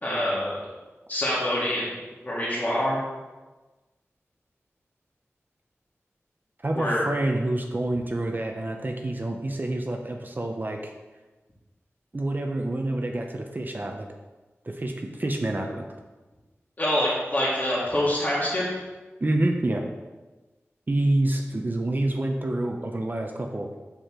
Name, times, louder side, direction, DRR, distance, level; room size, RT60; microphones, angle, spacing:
voice 1, 0.0-0.6 1.1-2.0 2.2-3.0 6.7-7.0 16.8-18.6, left 1 dB, 35° left, -7 dB, 1.9 m, -25 dB
voice 2, 6.6-10.9 12.1-14.1 14.6-15.8 19.2-19.8 20.9-23.8, right 1 dB, 40° right, 2 dB, 0.7 m, -27 dB
6.6 x 5.2 x 3.7 m, 1.2 s
wide cardioid pair, 60°, 5 cm